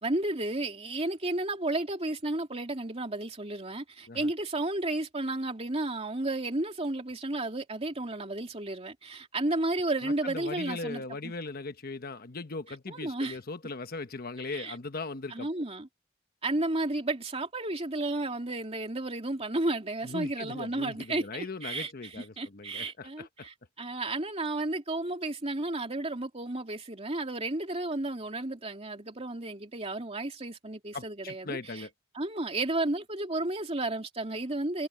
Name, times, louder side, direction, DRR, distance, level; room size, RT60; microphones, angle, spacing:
voice 1, 0.0-11.3 12.9-13.4 14.4-14.7 15.3-15.9 16.4-31.9 32.1-34.9, right 2 dB, 30° right, 2.8 m, -32 dB
voice 2, 10.0-15.5 20.0-23.5 30.9-31.9, left 3 dB, 50° left, 1.1 m, -39 dB
head